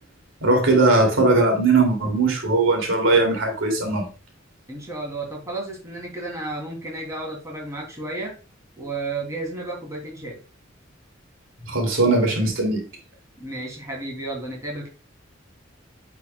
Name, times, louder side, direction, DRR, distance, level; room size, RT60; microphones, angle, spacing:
voice 1, 0.4-4.0 11.7-12.8, right 3 dB, 80° right, 1 dB, 2.7 m, -19 dB
voice 2, 4.7-8.3 8.8-10.4 13.4-14.9, right 2 dB, 15° right, -1 dB, 2.8 m, -32 dB
9.0 x 6.2 x 2.3 m, 0.33 s
head